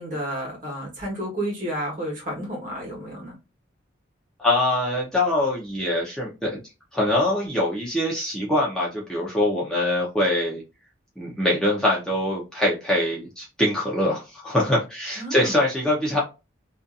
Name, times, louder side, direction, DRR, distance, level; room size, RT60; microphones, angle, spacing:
voice 1, 0.0-3.4 15.2-15.6, right 1 dB, 40° right, -2 dB, 1.2 m, -31 dB
voice 2, 4.4-6.6 6.9-10.6 11.2-16.2, left 1 dB, 5° left, -4 dB, 0.6 m, -23 dB
2.6 x 2.4 x 2.4 m, 0.26 s
head